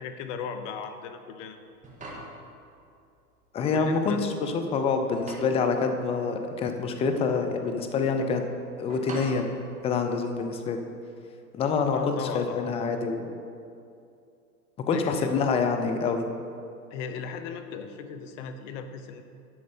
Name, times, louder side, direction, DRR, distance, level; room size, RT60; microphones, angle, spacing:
voice 1, 0.0-1.6 3.6-4.6 11.9-12.7 14.9-15.5 16.9-19.2, left 6 dB, 50° left, 8 dB, 0.9 m, -37 dB
sound 1, 1.6-10.6, right 1 dB, 15° right, 1.8 m, -46 dB
voice 2, 3.5-8.4 8.8-9.5 9.8-10.8 11.5-13.3 14.9-16.3, left 4 dB, 15° left, 6 dB, 0.4 m, -26 dB
11.0 x 6.3 x 4.3 m, 2.5 s
hypercardioid pair, 110°, 47 cm